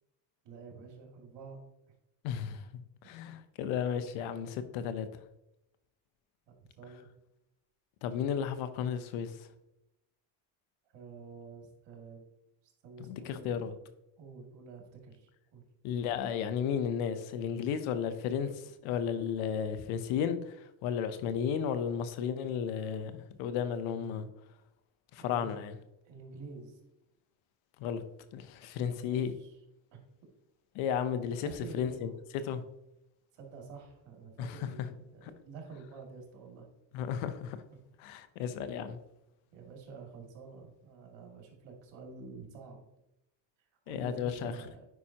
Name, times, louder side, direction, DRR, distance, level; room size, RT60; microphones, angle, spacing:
voice 1, 0.4-1.6 6.5-7.1 10.9-12.2 12.8-13.6 14.2-15.6 25.2-25.5 26.1-26.8 28.8-29.5 29.9-30.0 31.1-32.1 33.3-36.7 37.7-37.8 39.5-42.8 43.9-44.9, right 4 dB, 65° right, 2.5 m, -49 dB
voice 2, 2.2-2.7 3.0-5.1 8.0-9.5 13.0-13.7 15.8-24.3 25.1-25.7 27.8-28.0 28.3-29.3 30.7-32.6 34.4-34.6 35.2-35.3 36.9-37.6 38.0-39.0 43.9-44.6, left 8 dB, 85° left, 0.9 m, -34 dB
9.5 x 5.3 x 2.9 m
cardioid pair, 105°, 46 cm